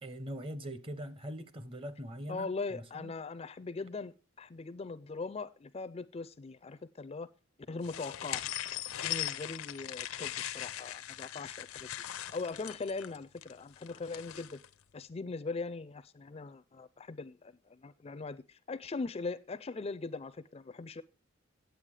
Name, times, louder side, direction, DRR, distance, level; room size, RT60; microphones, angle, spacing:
voice 1, 0.0-3.1, equal, 25° right, 0.7 m, -42 dB
voice 2, 2.3-7.3 7.7-8.4 9.0-11.9 12.3-14.6 14.9-21.0, left 3 dB, 30° left, 0.4 m, -40 dB
sound 1, 7.8-14.7, left 13 dB, 90° left, 0.6 m, -40 dB
9.1 x 8.1 x 4.8 m
head